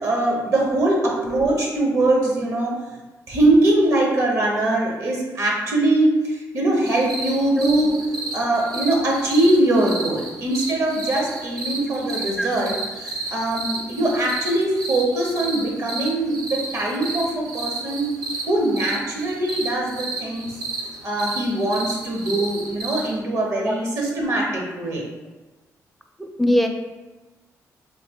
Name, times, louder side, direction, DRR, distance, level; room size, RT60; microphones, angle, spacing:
voice 1, 0.0-2.7 3.3-8.0 8.3-12.7 13.0-18.1 18.5-20.5 21.0-25.0, right 1 dB, 55° right, -1 dB, 0.9 m, -22 dB
sound 1, 6.9-23.2, right 3 dB, 80° right, 0.6 m, -32 dB
voice 2, 26.2-26.7, equal, ahead, 3 dB, 0.4 m, -22 dB
3.1 x 2.8 x 3.6 m, 1.2 s
cardioid pair, 90°, 6 cm